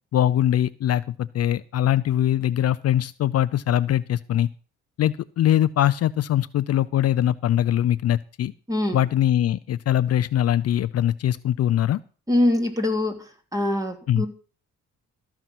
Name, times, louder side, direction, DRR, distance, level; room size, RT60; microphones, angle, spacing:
voice 1, 0.1-4.5 5.0-8.5 8.9-12.0 14.1-14.2, left 11 dB, 55° left, 15 dB, 0.5 m, -22 dB
voice 2, 8.7-9.0 12.3-14.3, left 1 dB, 10° right, 5 dB, 2.9 m, -23 dB
13.5 x 5.8 x 7.6 m, 0.39 s
cardioid pair, 90°, 30 cm